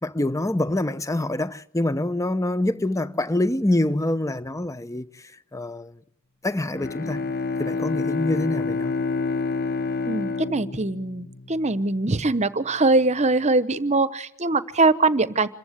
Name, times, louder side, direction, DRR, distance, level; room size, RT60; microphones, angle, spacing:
voice 1, 0.0-5.1 5.5-6.0 6.4-7.2 7.6-8.9, left 1 dB, 15° left, 0.9 m, -25 dB
Bowed string instrument, 6.7-11.9, left 4 dB, 45° left, 1.0 m, -28 dB
voice 2, 10.1-15.5, right 3 dB, 30° right, 1.0 m, -22 dB
27.0 x 15.0 x 8.1 m
head